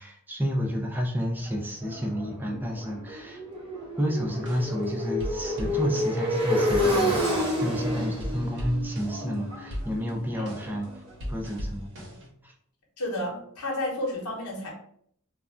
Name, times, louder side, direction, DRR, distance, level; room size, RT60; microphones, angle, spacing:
voice 1, 0.0-3.4 4.0-10.9 11.3-12.1 12.4-12.5, equal, 10° right, 1 dB, 0.4 m, -30 dB
Motorcycle, 1.4-11.3, left 1 dB, 25° right, 0.9 m, -30 dB
sound 1, 4.4-6.3 6.7-7.8 8.1-9.3 9.7-12.3, equal, 55° right, 0.8 m, -38 dB
voice 2, 13.0-14.7, left 1 dB, 85° left, -2 dB, 0.9 m, -32 dB
2.3 x 2.1 x 3.6 m, 0.64 s
head